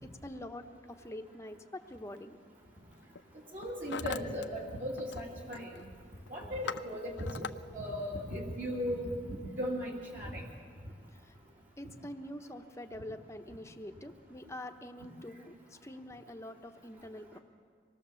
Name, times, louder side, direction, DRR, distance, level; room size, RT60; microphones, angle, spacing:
voice 1, 0.0-2.4 11.1-11.4 11.8-17.4, left 1 dB, 15° left, 6 dB, 1.0 m, -45 dB
Hammer, 1.9-2.2 2.9-3.2 3.5-4.5 4.7-5.3 5.5-5.9 6.3-7.6, left 6 dB, 75° left, 0.6 m, -41 dB
voice 2, 3.5-5.8 6.3-10.4, equal, 45° right, -4 dB, 2.9 m, -37 dB
25.0 x 20.0 x 7.1 m, 2.1 s
head